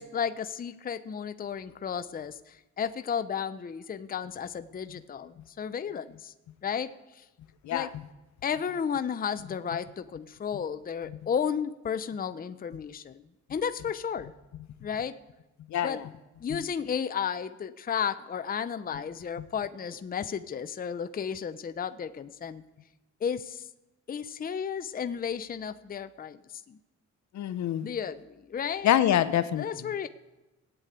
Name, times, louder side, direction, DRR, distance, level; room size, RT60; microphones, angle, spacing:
voice 1, 0.0-6.3 6.6-7.2 7.7-7.9 8.4-13.2 13.5-14.3 14.8-15.2 15.8-16.0 16.4-22.6 23.2-23.7 24.1-26.4 26.7-26.8 27.8-28.9 29.6-30.1, left 7 dB, 30° left, 12 dB, 0.6 m, -33 dB
voice 2, 15.7-16.1 27.3-27.9 28.8-29.9, left 11 dB, 65° left, 13 dB, 0.8 m, -26 dB
15.5 x 8.3 x 8.7 m, 1.1 s
cardioid pair, 90°, 30 cm